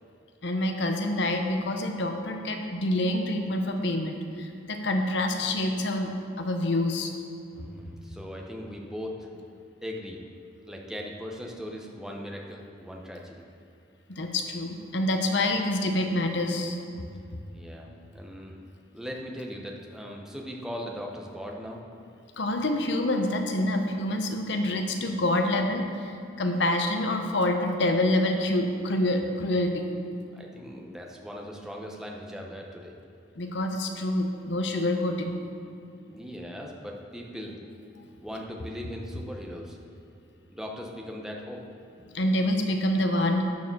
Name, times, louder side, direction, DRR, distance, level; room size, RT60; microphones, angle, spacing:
voice 1, 0.4-6.1 6.4-7.1 14.1-16.8 22.4-29.8 33.4-35.4 42.1-43.4, left 1 dB, 65° left, 4 dB, 0.8 m, -27 dB
voice 2, 7.5-9.3 9.8-10.3 10.7-13.5 17.5-18.7 18.9-22.0 30.3-33.0 36.0-37.7 38.2-39.8 40.5-41.7, equal, 5° right, 0 dB, 0.7 m, -39 dB
11.5 x 4.8 x 6.6 m, 2.4 s
head